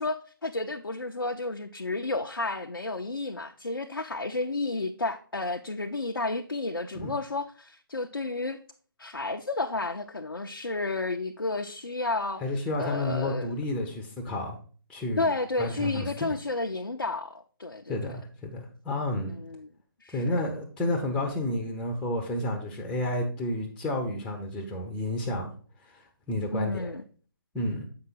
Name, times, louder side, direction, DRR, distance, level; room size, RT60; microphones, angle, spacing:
voice 1, 0.0-8.6 9.0-12.4 12.8-13.5 15.2-18.1 19.2-19.7 20.0-20.4 26.5-27.0, left 3 dB, 85° left, 0.6 m, -32 dB
voice 2, 12.4-14.6 14.9-15.3 15.6-16.3 17.9-19.3 20.1-25.5 25.8-26.9 27.5-27.9, left 1 dB, 5° left, 0.8 m, -31 dB
7.8 x 5.6 x 3.9 m
figure-of-eight pair, 145°, 12 cm